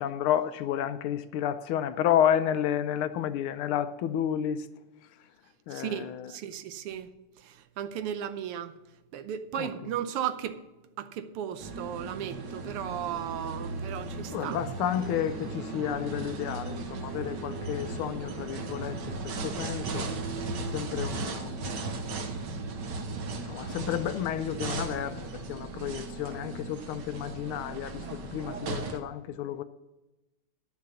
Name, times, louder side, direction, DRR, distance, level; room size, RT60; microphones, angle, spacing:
voice 1, 0.0-4.6 5.7-6.3 9.6-9.7 14.3-19.2 19.4-20.0 20.7-21.9 23.5-29.6, left 10 dB, 80° left, 1.4 m, -31 dB
voice 2, 5.7-7.1 7.4-8.7 9.1-10.6 11.0-14.7, right 10 dB, 85° right, 1.7 m, -35 dB
sound 1, 11.6-29.0, right 3 dB, 60° right, 1.5 m, -36 dB
11.5 x 6.5 x 7.0 m
omnidirectional pair, 2.4 m